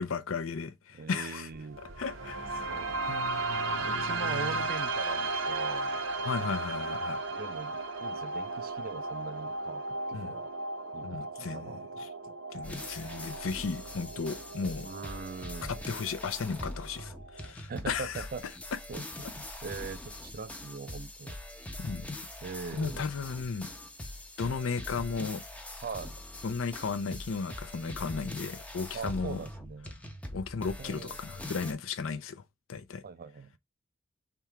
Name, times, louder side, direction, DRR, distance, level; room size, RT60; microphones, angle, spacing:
voice 1, 0.0-1.5 2.0-2.7 3.1-4.6 6.2-7.2 10.1-10.3 11.0-11.7 12.5-14.9 15.7-18.2 21.8-22.2 22.8-23.7 24.4-25.4 26.4-29.4 30.3-32.4 32.7-33.0, left 5 dB, 90° left, 0.5 m, -35 dB
voice 2, 0.9-1.8 2.7-2.9 3.5-6.7 7.3-10.5 10.9-12.3 14.8-15.8 17.7-18.4 18.9-21.4 22.4-23.1 25.8-26.2 28.9-29.9 30.8-31.2 33.0-33.6, right 5 dB, 50° right, 0.4 m, -41 dB
sound 1, 1.5-17.5, right 2 dB, 80° right, 1.0 m, -36 dB
sound 2, 12.6-31.7, left 1 dB, 5° left, 0.6 m, -43 dB
3.5 x 2.9 x 4.5 m
head